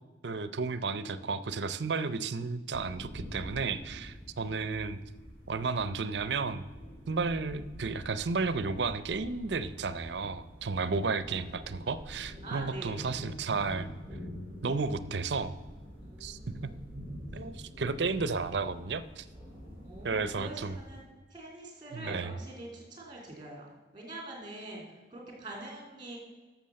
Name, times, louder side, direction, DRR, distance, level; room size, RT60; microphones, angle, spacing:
voice 1, 0.2-5.0 5.5-6.6 7.1-13.9 14.6-15.5 16.2-16.7 17.3-19.3 20.0-20.8 21.9-22.3, right 4 dB, 70° right, 15 dB, 0.6 m, -33 dB
sound 1, 2.7-21.0, equal, 10° right, 3.3 m, -46 dB
voice 2, 12.4-13.0 16.0-16.8 19.8-23.7 23.9-24.8 25.1-26.2, right 2 dB, 25° right, -1 dB, 3.3 m, -44 dB
11.5 x 7.1 x 6.4 m, 1.3 s
head